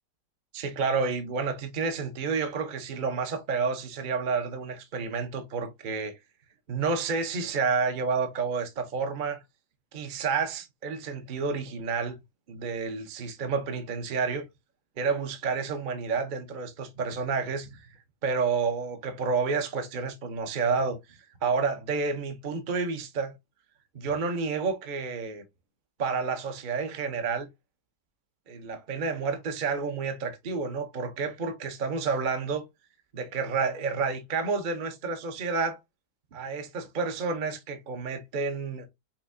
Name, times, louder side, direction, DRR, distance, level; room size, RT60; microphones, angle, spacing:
voice 1, 0.5-6.1 6.7-9.4 9.9-12.2 12.5-14.4 15.0-17.9 18.2-23.3 23.9-25.4 26.0-27.5 28.5-32.7 33.1-35.8 36.3-38.9, right 4 dB, 50° right, 0.5 m, -30 dB
5.6 x 2.7 x 2.6 m
omnidirectional pair, 1.9 m